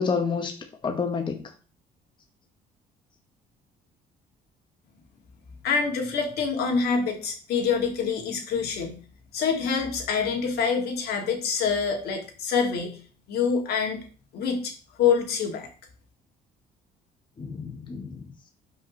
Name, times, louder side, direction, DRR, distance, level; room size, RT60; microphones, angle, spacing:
voice 1, 0.0-1.5 17.4-18.3, left 5 dB, 30° left, 0.9 m, -29 dB
voice 2, 5.6-9.0 9.3-12.9 13.3-14.0 14.3-14.7 15.0-15.7, left 6 dB, 70° left, 2.4 m, -26 dB
12.0 x 5.5 x 3.1 m
cardioid pair, 110°, 17 cm